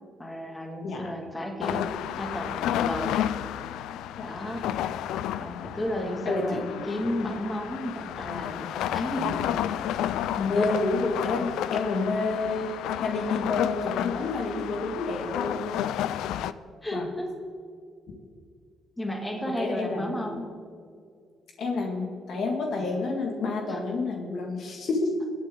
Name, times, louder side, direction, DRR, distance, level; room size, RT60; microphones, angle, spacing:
voice 1, 0.2-1.9 2.2-3.1 4.2-4.6 5.4-9.3 10.5-10.7 16.8-17.3 19.0-20.5 23.7-23.8, equal, 15° left, 0 dB, 2.7 m, -33 dB
voice 2, 0.8-1.2 6.3-6.6 8.2-8.5 9.2-9.6 10.4-15.7 16.9-17.1 19.6-20.2 21.6-25.1, left 3 dB, 65° left, 1 dB, 1.9 m, -29 dB
sound 1, 1.6-16.5, left 11 dB, 90° left, 0.4 m, -31 dB
23.5 x 8.6 x 3.8 m, 2.2 s
cardioid pair, 90°, 0 cm